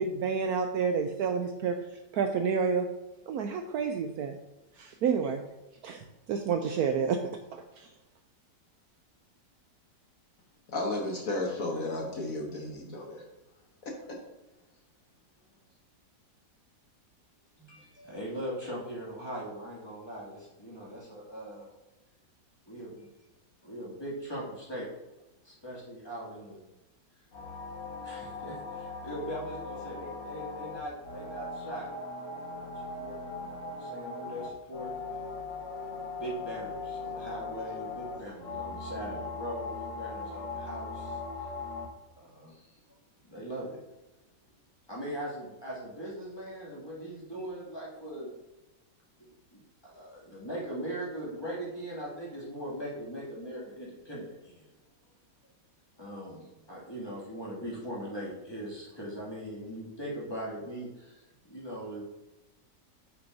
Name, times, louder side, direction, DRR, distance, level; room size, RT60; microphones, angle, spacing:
voice 1, 0.0-1.8 2.1-2.9 3.3-4.4 4.8-5.4 5.8-7.2 7.5-7.9, right 6 dB, 70° right, 6 dB, 0.9 m, -29 dB
voice 2, 10.7-13.2 13.8-14.2, left 2 dB, 55° left, 0 dB, 1.4 m, -33 dB
voice 3, 17.6-21.7 22.7-23.1 23.6-24.9 25.4-26.6 28.0-35.4 36.2-41.5 42.2-42.8 43.3-43.8 44.9-48.3 49.2-54.7 56.0-62.0, equal, 15° left, -6 dB, 2.3 m, -40 dB
sound 1, 27.3-41.9, left 3 dB, 85° left, 1.8 m, -39 dB
8.8 x 5.8 x 2.7 m, 1.0 s
omnidirectional pair, 1.9 m